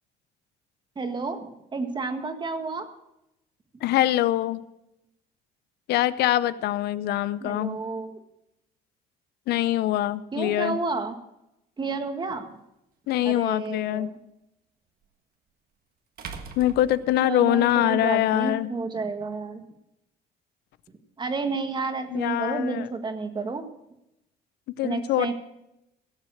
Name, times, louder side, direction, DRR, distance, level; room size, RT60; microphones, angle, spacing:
voice 1, 0.9-2.9 7.4-8.2 10.3-11.1 11.8-12.6 13.2-14.2 17.2-19.6 21.2-23.7 24.8-25.3, right 3 dB, 25° right, 7 dB, 1.6 m, -30 dB
voice 2, 3.8-4.6 5.9-7.8 9.5-10.8 13.1-14.1 16.6-18.7 22.1-22.9 24.8-25.3, left 13 dB, 75° left, 17 dB, 0.7 m, -24 dB
sound 1, 12.3-12.4 15.0-15.1 16.2-17.8, right 5 dB, 60° right, 1.6 m, -41 dB
17.0 x 7.3 x 6.4 m, 0.88 s
cardioid pair, 110°, 17 cm